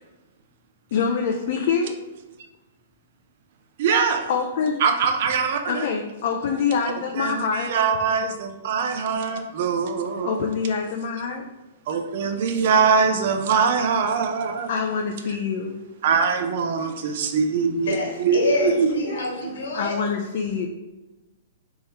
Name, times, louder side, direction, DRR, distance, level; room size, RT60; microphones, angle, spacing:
voice 1, 0.9-2.0 4.3-4.8 5.7-7.7 10.2-11.4 14.7-15.8 16.8-16.9 19.7-20.7, left 6 dB, 55° left, 2 dB, 0.3 m, -25 dB
voice 2, 3.8-4.3 4.8-5.9 7.2-10.5 11.9-14.7 16.0-18.9, right 5 dB, 55° right, 5 dB, 0.4 m, -22 dB
voice 3, 17.8-19.9, left 2 dB, 70° left, -2 dB, 1.4 m, -27 dB
3.5 x 3.1 x 2.9 m, 1.1 s
figure-of-eight pair, 115°, 0 cm